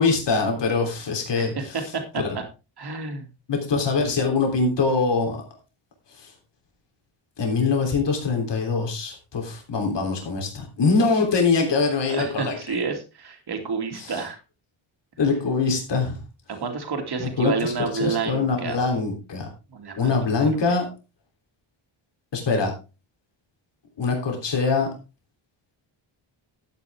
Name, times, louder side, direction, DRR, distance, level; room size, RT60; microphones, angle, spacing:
voice 1, 0.0-1.8 2.2-2.3 3.5-5.4 7.4-12.6 13.9-14.1 15.2-16.2 17.2-17.7 18.0-19.5 20.0-20.9 22.3-22.7 24.0-24.9, left 4 dB, 60° left, 2 dB, 3.4 m, -23 dB
voice 2, 1.4-2.4 2.8-3.3 12.1-14.4 16.5-18.8 19.7-20.8, right 5 dB, 50° right, 4 dB, 2.5 m, -30 dB
12.0 x 9.1 x 3.5 m, 0.30 s
wide cardioid pair, 175°, 49 cm